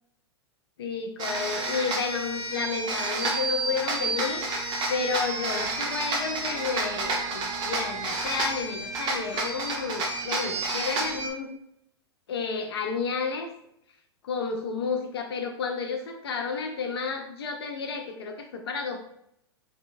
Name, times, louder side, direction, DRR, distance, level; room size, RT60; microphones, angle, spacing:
voice 1, 0.8-11.5 12.3-13.5 14.2-19.0, left 5 dB, 65° left, 4 dB, 0.4 m, -31 dB
sound 1, 1.2-11.3, right 2 dB, 30° right, 0.6 m, -30 dB
2.6 x 2.2 x 2.5 m, 0.75 s
figure-of-eight pair, 100°, 14 cm